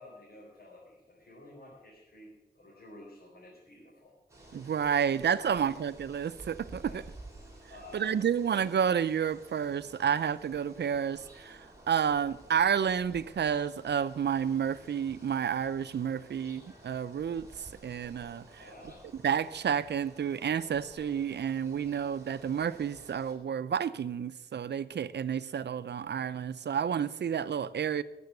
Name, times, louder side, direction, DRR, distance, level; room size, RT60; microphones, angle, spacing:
voice 1, 0.0-4.2 5.4-5.6 6.8-7.0 7.7-8.2 18.6-19.1, left 1 dB, 65° left, 4.2 m, -51 dB
sound 1, 4.3-23.4, right 1 dB, 15° right, 3.6 m, -53 dB
voice 2, 4.5-7.0 7.9-11.6 11.9-18.6 19.2-28.0, right 8 dB, 85° right, 0.5 m, -30 dB
13.5 x 7.0 x 8.3 m
wide cardioid pair, 110°, 17 cm